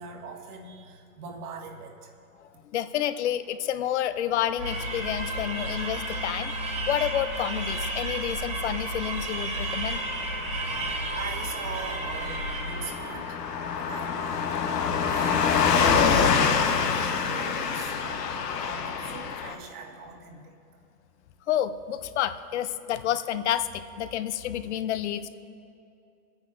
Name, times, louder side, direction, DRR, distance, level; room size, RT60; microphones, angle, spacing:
voice 1, 0.0-2.1 10.4-13.4 13.8-20.6, right 4 dB, 65° right, 1 dB, 1.8 m, -42 dB
voice 2, 2.4-10.0 21.5-25.3, left 11 dB, 45° left, 12 dB, 0.5 m, -29 dB
sound 1, 4.6-13.2, right 2 dB, 15° right, 0.6 m, -32 dB
Bass guitar, 4.7-10.9, left 4 dB, 20° left, 1.3 m, -46 dB
Car passing by / Truck, 5.2-19.5, left 6 dB, 80° left, 1.1 m, -28 dB
26.5 x 9.6 x 2.5 m, 2.6 s
hypercardioid pair, 140°, 48 cm